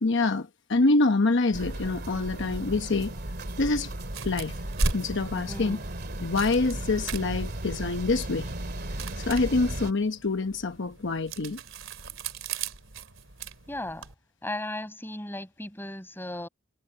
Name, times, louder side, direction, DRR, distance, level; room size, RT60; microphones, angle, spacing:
voice 1, 0.0-3.1 3.6-3.9 4.2-4.6 4.9-5.8 6.2-8.5 9.2-11.6, left 3 dB, 65° left, 1.0 m, -26 dB
sound 1, 1.5-9.9, right 1 dB, 55° right, 2.4 m, -36 dB
sound 2, 4.0-14.1, right 3 dB, 70° right, 3.3 m, -37 dB
voice 2, 5.5-5.8 13.7-14.1 14.4-16.5, left 1 dB, 10° left, 6.8 m, -36 dB
head